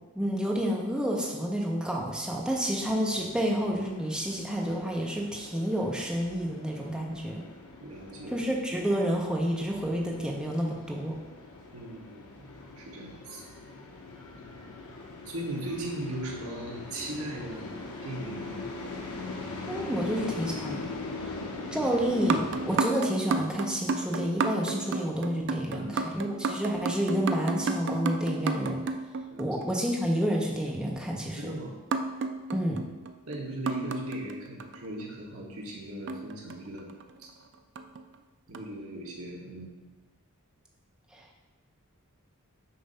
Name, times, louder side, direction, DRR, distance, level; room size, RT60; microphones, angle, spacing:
voice 1, 0.1-7.5 8.3-11.2 19.7-20.8 21.7-28.9 29.4-31.5 32.5-32.8 41.1-41.4, equal, 5° right, -2 dB, 0.7 m, -29 dB
sound 1, 3.0-22.8, left 3 dB, 80° left, 0.9 m, -41 dB
voice 2, 7.8-8.4 11.7-13.4 15.2-18.6 19.9-20.0 25.7-26.0 29.3-29.7 31.4-31.7 33.2-36.9 37.2-37.3 38.5-39.8, right 1 dB, 65° right, -3 dB, 1.1 m, -39 dB
sound 2, 22.2-29.9 31.9-34.9 36.1-37.1 37.8-38.0 38.5-38.6, right 4 dB, 50° right, 0.4 m, -32 dB
6.8 x 2.6 x 5.4 m, 1.2 s
head